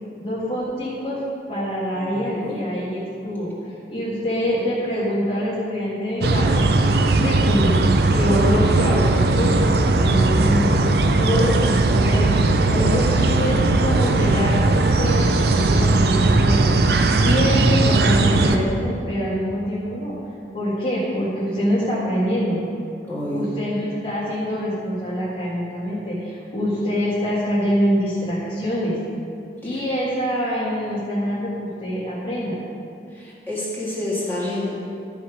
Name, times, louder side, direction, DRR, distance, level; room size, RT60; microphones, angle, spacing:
voice 1, 0.2-1.2 1.5-3.5 3.9-6.5 6.8-7.8 8.1-12.3 12.7-20.2 20.5-22.6 23.3-28.9 29.6-32.6, equal, 30° left, -10 dB, 1.7 m, -25 dB
voice 2, 1.9-2.6 12.6-12.9 23.1-23.5 29.6-29.8 33.1-34.7, left 1 dB, 10° left, -7 dB, 1.8 m, -29 dB
sound 1, 6.2-18.6, right 2 dB, 60° right, 0.5 m, -18 dB
12.5 x 4.9 x 5.0 m, 2.5 s
head